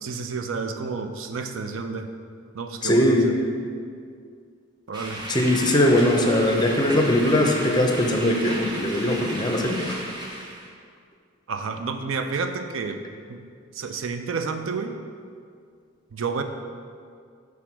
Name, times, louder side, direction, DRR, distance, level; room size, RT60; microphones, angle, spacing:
voice 1, 0.0-2.1 2.5-3.3 4.9-5.2 11.5-13.0 13.3-13.4 13.7-15.0 16.1-16.4, right 4 dB, 85° right, 7 dB, 0.5 m, -30 dB
voice 2, 2.8-3.3 5.3-10.0, left 1 dB, 20° left, 2 dB, 0.6 m, -20 dB
sound 1, 4.9-10.7, right 1 dB, 20° right, 0.8 m, -34 dB
6.0 x 3.6 x 6.0 m, 2.2 s
head